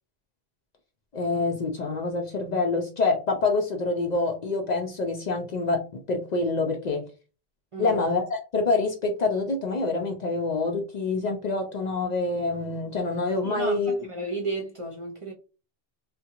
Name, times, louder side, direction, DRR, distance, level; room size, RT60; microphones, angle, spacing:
voice 1, 1.1-7.0 7.8-14.0, left 3 dB, 55° left, 0.5 m, -26 dB
voice 2, 13.4-15.3, right 2 dB, 40° right, 0.5 m, -33 dB
3.5 x 2.2 x 2.8 m
omnidirectional pair, 1.0 m